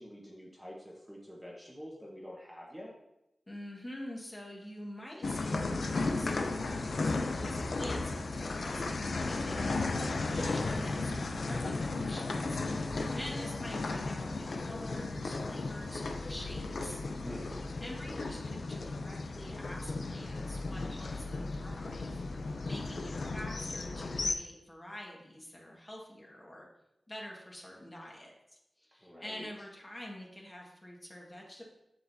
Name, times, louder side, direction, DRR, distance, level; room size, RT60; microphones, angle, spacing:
voice 1, 0.0-2.9 17.2-17.7 29.0-29.5, equal, 5° right, -4 dB, 1.3 m, -47 dB
voice 2, 3.5-12.6 13.1-17.0 17.8-22.2 22.6-26.7 27.1-31.6, left 1 dB, 25° left, -2 dB, 1.7 m, -46 dB
sound 1, 5.2-24.3, left 3 dB, 70° left, 0.6 m, -35 dB
7.8 x 7.1 x 2.8 m, 0.87 s
wide cardioid pair, 100°, 0 cm